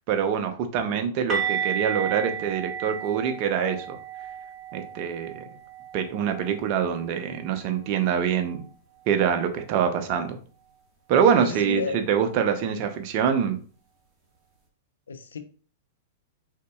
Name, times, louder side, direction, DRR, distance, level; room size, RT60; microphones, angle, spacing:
voice 1, 0.1-4.0 4.7-5.5 5.9-8.6 9.1-10.4 11.1-13.6, right 7 dB, 45° right, 7 dB, 0.8 m, -25 dB
sound 1, 1.3-7.1 7.3-7.6 7.9-8.1 11.3-11.4, right 7 dB, 25° right, 1.6 m, -33 dB
voice 2, 11.4-12.0 15.1-15.4, left 4 dB, 80° left, 9 dB, 0.6 m, -31 dB
4.6 x 3.9 x 2.4 m, 0.40 s
hypercardioid pair, 110°, 0 cm